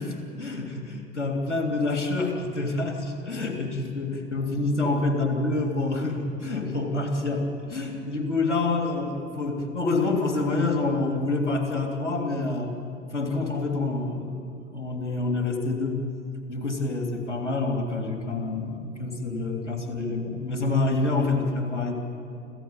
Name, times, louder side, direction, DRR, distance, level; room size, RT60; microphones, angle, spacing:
voice 1, 0.0-12.8 13.1-16.1 16.5-22.0, left 3 dB, 85° left, 3 dB, 3.1 m, -27 dB
26.5 x 15.5 x 8.7 m, 2.5 s
figure-of-eight pair, 80°, 35 cm